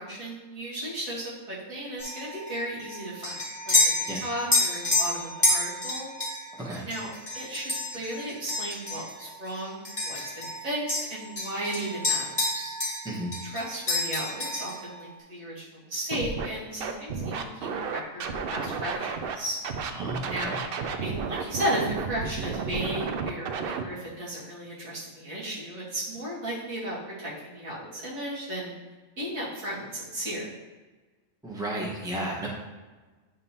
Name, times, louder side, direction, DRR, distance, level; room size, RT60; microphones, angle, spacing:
voice 1, 0.0-3.9 4.2-6.1 6.9-12.7 13.4-19.6 20.3-20.6 20.9-28.8 29.2-30.5, right 1 dB, 80° right, -7 dB, 2.5 m, -35 dB
sound 1, 2.0-10.6 10.9-13.1 13.3-14.8, left 2 dB, 20° left, 1.4 m, -29 dB
Scratching (performance technique), 16.1-16.5 16.8-19.4 19.6-23.8, right 5 dB, 60° right, 0.6 m, -32 dB
voice 2, 19.9-20.6 31.4-32.5, right 1 dB, 5° right, -5 dB, 1.1 m, -33 dB
9.0 x 5.2 x 2.9 m, 1.3 s
omnidirectional pair, 1.4 m